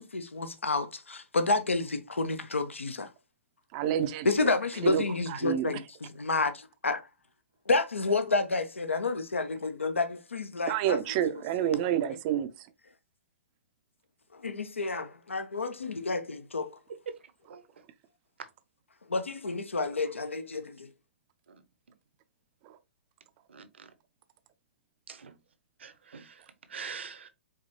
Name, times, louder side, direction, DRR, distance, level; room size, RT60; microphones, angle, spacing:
voice 1, 0.0-3.1 4.2-5.8 6.1-7.0 7.7-11.0 14.3-16.7 19.1-20.9, left 3 dB, 80° left, 0.7 m, -30 dB
voice 2, 3.7-4.5 4.8-5.0 5.3-5.7 10.7-12.7, right 10 dB, 35° right, 0.5 m, -29 dB
voice 3, 23.5-23.9 25.1-25.3 25.8-27.3, right 6 dB, 65° right, 0.8 m, -43 dB
4.9 x 3.6 x 2.9 m
figure-of-eight pair, 120°, 7 cm